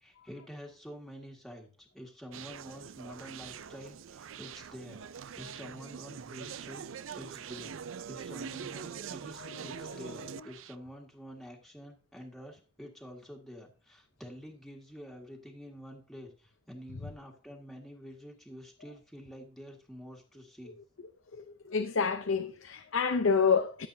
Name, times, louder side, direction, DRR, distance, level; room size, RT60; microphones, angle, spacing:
voice 1, 0.0-7.8 8.1-20.8, equal, ahead, 1.8 m, -48 dB
Conversation, 2.3-10.7, right 7 dB, 85° right, 0.4 m, -43 dB
voice 2, 9.4-10.5 21.3-23.9, left 5 dB, 85° left, 0.7 m, -29 dB
14.0 x 7.6 x 2.7 m
head